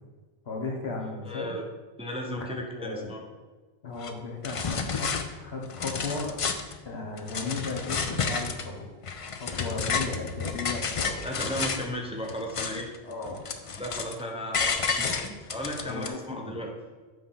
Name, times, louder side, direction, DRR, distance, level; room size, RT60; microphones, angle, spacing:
voice 1, 0.4-1.5 2.4-3.2 3.8-5.1 5.4-6.3 6.8-8.9 9.3-11.3 13.0-13.5 15.0-15.3 15.8-16.6, left 3 dB, 80° left, 1 dB, 1.4 m, -35 dB
voice 2, 1.0-1.6 2.0-3.2 11.2-12.9 13.8-16.7, equal, 5° right, 1 dB, 0.6 m, -35 dB
sound 1, 4.0-4.1 4.4-5.2 5.6-6.8 7.2-8.7 9.0-11.9 12.2-13.0 13.2-14.2 14.5-16.1, left 5 dB, 45° left, 0.4 m, -31 dB
7.7 x 3.4 x 5.5 m, 1.3 s
omnidirectional pair, 1.1 m